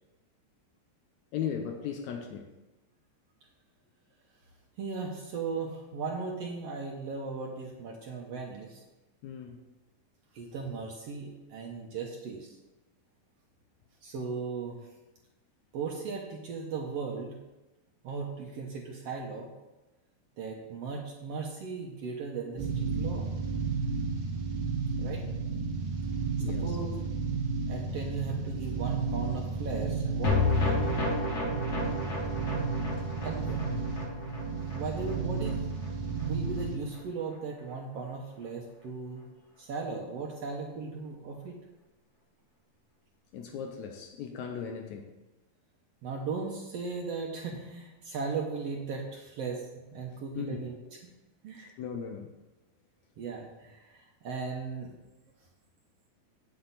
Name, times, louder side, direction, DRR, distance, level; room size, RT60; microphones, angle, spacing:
voice 1, 1.3-2.5 9.2-9.6 26.4-26.8 30.4-30.6 33.4-33.9 43.3-45.1 50.4-50.6 51.6-52.3, left 7 dB, 75° left, 1.9 m, -38 dB
voice 2, 4.8-8.8 10.3-12.6 14.0-14.8 15.7-17.4 18.0-19.5 20.4-23.3 25.0-25.3 26.5-27.0 27.7-30.9 33.2-33.5 34.6-35.6 36.0-39.2 39.6-41.6 46.0-49.6 49.9-51.0 51.4-51.7 53.2-54.9, right 4 dB, 65° right, 1.7 m, -37 dB
sound 1, 22.6-36.7, right 4 dB, 45° right, 1.8 m, -32 dB
sound 2, 30.2-36.7 36.9-37.0 37.3-37.4, left 3 dB, 55° left, 2.8 m, -32 dB
8.4 x 7.9 x 4.1 m
omnidirectional pair, 3.7 m